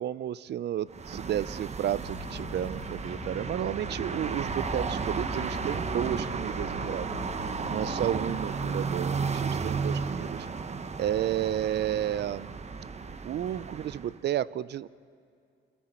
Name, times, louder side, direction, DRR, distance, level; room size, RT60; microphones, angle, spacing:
voice 1, 0.0-7.1 7.7-10.5 11.0-12.5 13.2-14.9, right 11 dB, 60° right, 19 dB, 0.5 m, -32 dB
sound 1, 0.9-14.2, right 5 dB, 35° right, 1.0 m, -34 dB
sound 2, 2.0-11.8, left 12 dB, 70° left, 0.7 m, -46 dB
28.0 x 26.0 x 4.4 m, 2.3 s
cardioid pair, 90°, 20 cm